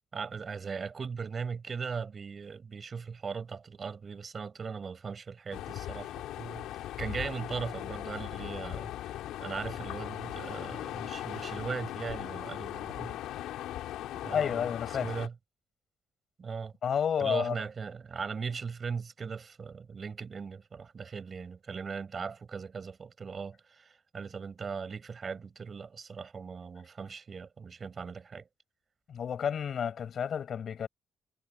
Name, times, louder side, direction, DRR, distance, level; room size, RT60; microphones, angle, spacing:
voice 1, 0.1-13.1 14.2-15.3 16.4-16.7 17.2-28.5, right 5 dB, 40° right, 5.9 m, -39 dB
sound 1, 5.5-15.3, left 13 dB, 90° left, 4.3 m, -39 dB
voice 2, 14.3-15.1 16.8-17.6 29.1-30.9, left 8 dB, 55° left, 7.1 m, -30 dB
cardioid pair, 90°, 0 cm